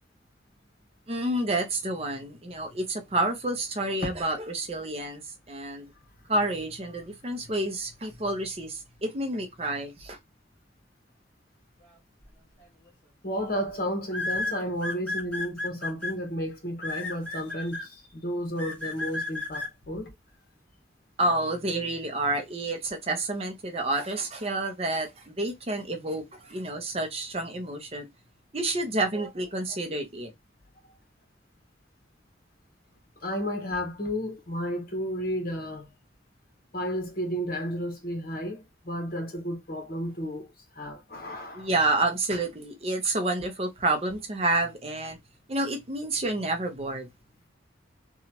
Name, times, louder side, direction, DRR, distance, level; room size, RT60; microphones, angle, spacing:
voice 1, 1.1-5.2 5.5-5.9 6.3-10.2 21.2-28.1 28.5-30.3 41.5-45.2 45.5-47.1, right 2 dB, 30° right, 0.6 m, -29 dB
sound 1, 12.6-12.9 14.1-16.1 16.8-17.8 18.6-19.7, left 2 dB, 10° left, 1.4 m, -32 dB
voice 2, 13.2-20.1 33.2-35.9 36.7-40.5 40.7-41.7, equal, 50° left, 1.1 m, -32 dB
2.9 x 2.3 x 2.8 m
head